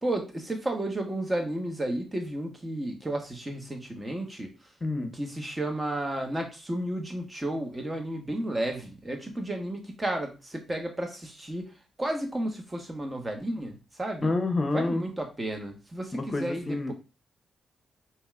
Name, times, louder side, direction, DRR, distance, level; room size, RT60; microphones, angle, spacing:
voice 1, 0.0-4.5 5.0-11.7 12.0-14.3 14.7-16.9, right 1 dB, 25° right, 4 dB, 1.3 m, -32 dB
voice 2, 4.8-5.1 14.2-15.0 16.1-16.9, left 2 dB, 40° left, 7 dB, 0.7 m, -28 dB
5.2 x 2.9 x 2.5 m, 0.31 s
hypercardioid pair, 40°, 0 cm